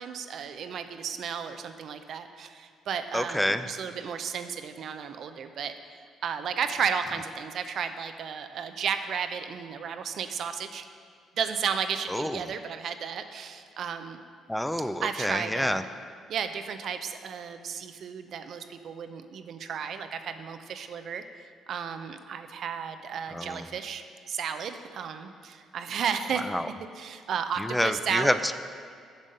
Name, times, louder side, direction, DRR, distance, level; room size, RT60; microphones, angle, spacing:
voice 1, 0.0-5.8 6.2-10.8 11.4-14.2 15.0-15.9 16.3-26.5 26.8-28.4, right 7 dB, 60° right, 9 dB, 0.5 m, -33 dB
voice 2, 3.1-3.6 12.1-12.4 14.5-15.8 23.3-23.7 26.5-26.7 27.6-28.6, left 1 dB, 5° left, 10 dB, 0.4 m, -28 dB
7.2 x 5.3 x 6.4 m, 2.3 s
hypercardioid pair, 45°, 0 cm